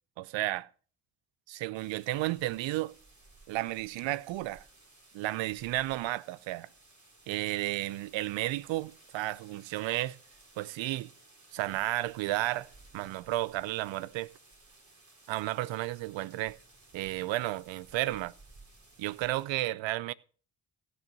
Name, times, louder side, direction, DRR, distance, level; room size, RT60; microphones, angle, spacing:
voice 1, 0.2-0.7 1.5-2.9 3.5-4.7 5.1-6.7 7.3-10.2 10.6-11.1 11.5-12.7 12.9-14.3 15.3-16.6 16.9-18.3 19.0-20.1, right 16 dB, 70° right, 0.7 m, -32 dB
sound 1, 1.7-19.5, right 2 dB, 35° right, 4.8 m, -58 dB
16.0 x 6.3 x 6.0 m
hypercardioid pair, 45°, 47 cm